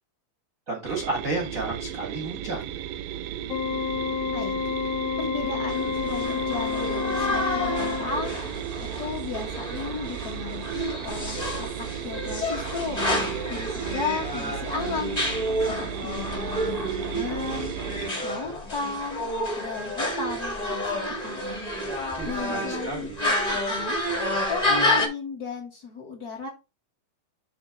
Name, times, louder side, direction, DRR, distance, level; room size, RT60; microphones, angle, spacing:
voice 1, 0.7-2.6 22.1-23.2, right 3 dB, 70° right, 1 dB, 0.7 m, -31 dB
sound 1, 0.9-18.1, right 11 dB, 85° right, 2.2 m, -35 dB
Organ, 3.5-8.6, left 6 dB, 85° left, 2.9 m, -29 dB
voice 2, 4.8-15.2 15.6-17.8 18.2-19.3 19.6-21.7 22.2-22.9 23.2-24.0 24.5-26.5, left 4 dB, 65° left, -2 dB, 0.9 m, -35 dB
sound 2, 5.7-25.1, left 1 dB, 30° left, 0.7 m, -29 dB
8.5 x 2.9 x 5.8 m, 0.28 s
omnidirectional pair, 4.0 m